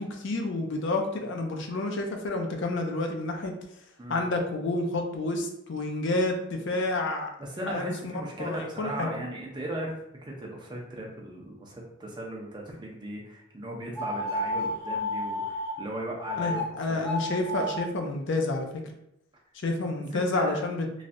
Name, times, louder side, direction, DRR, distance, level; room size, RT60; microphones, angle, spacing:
voice 1, 0.0-3.5 4.1-7.3 7.7-9.1 16.4-18.7 19.6-20.9, left 2 dB, 55° left, 3 dB, 0.4 m, -29 dB
voice 2, 7.4-17.0 20.1-20.6, right 1 dB, 20° right, -1 dB, 0.5 m, -37 dB
sound 1, 13.9-15.8 16.2-16.6 17.0-17.8, left 1 dB, 15° left, 1.3 m, -31 dB
3.2 x 2.6 x 2.5 m, 0.81 s
head